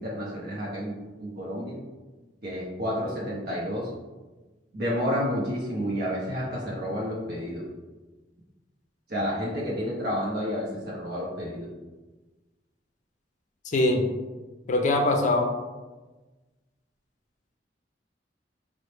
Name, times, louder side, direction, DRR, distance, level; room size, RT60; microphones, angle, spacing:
voice 1, 0.0-1.8 2.4-3.9 4.7-7.7 9.1-11.7, equal, 60° right, -5 dB, 0.7 m, -30 dB
voice 2, 13.7-14.0 14.7-15.5, left 2 dB, 45° left, 3 dB, 0.4 m, -22 dB
4.1 x 2.0 x 3.2 m, 1.2 s
head